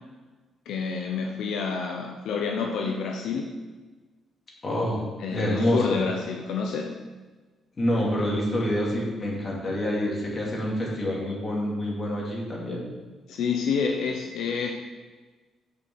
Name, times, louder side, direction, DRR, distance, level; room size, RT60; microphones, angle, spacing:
voice 1, 0.7-3.5 5.2-6.9 13.3-14.7, left 5 dB, 80° left, 2 dB, 0.8 m, -28 dB
voice 2, 4.6-5.0 5.3-6.0 7.8-12.8, equal, 35° left, -3 dB, 3.1 m, -27 dB
7.2 x 6.0 x 6.5 m, 1.3 s
cardioid pair, 90°, 0 cm